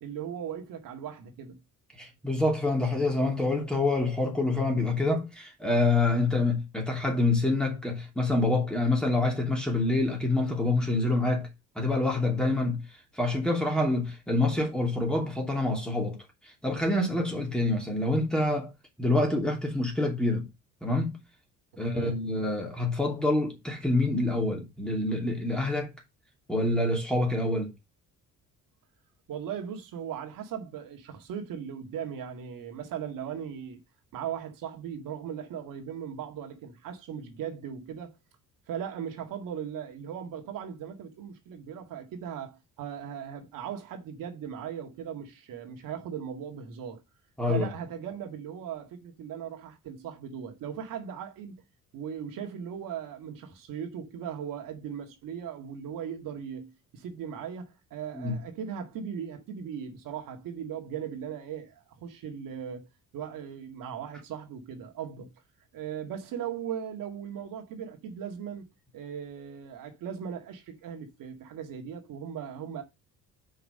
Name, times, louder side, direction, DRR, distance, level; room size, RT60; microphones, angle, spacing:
voice 1, 0.0-1.6 21.9-22.2 29.3-33.8 34.1-38.2 38.7-47.0 47.5-51.6 51.9-62.9 63.1-65.3 65.7-68.7 68.9-72.8, right 8 dB, 80° right, 2.0 m, -38 dB
voice 2, 2.0-11.5 11.7-12.8 13.1-16.2 16.6-18.7 19.0-20.5 20.8-21.2 21.8-25.9 26.5-27.7 47.4-47.7 58.1-58.4, left 2 dB, 5° left, 2.9 m, -26 dB
5.6 x 5.6 x 6.5 m
cardioid pair, 145°, 33 cm